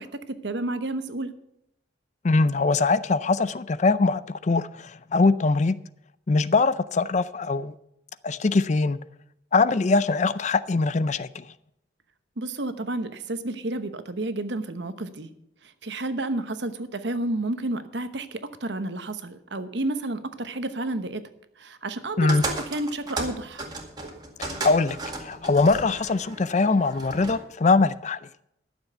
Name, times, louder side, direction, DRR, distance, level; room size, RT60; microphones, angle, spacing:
voice 1, 0.0-1.3 12.4-15.3 15.8-21.3 21.6-23.6, right 2 dB, 65° right, 1.0 m, -31 dB
voice 2, 2.2-5.8 6.3-7.7 8.2-9.0 9.5-11.4 22.2-22.4 24.4-28.2, left 3 dB, 40° left, 0.4 m, -22 dB
sound 1, 22.3-27.4, right 3 dB, 20° right, 2.0 m, -35 dB
12.0 x 7.2 x 7.8 m
head